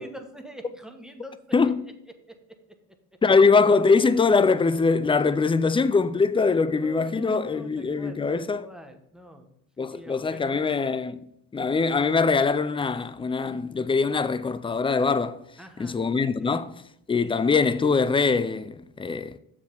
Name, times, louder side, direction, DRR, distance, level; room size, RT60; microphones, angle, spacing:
voice 1, 0.0-1.4 6.0-6.1 6.7-9.5 9.9-10.8 15.6-16.0 16.2-16.6 17.4-17.5, right 1 dB, ahead, 1.1 m, -45 dB
voice 2, 1.5-1.8 3.2-8.7 9.8-11.2 11.5-15.4 15.8-16.8 17.1-19.4, left 4 dB, 15° left, 0.4 m, -22 dB
7.0 x 4.8 x 5.3 m
supercardioid pair, 80°, 36 cm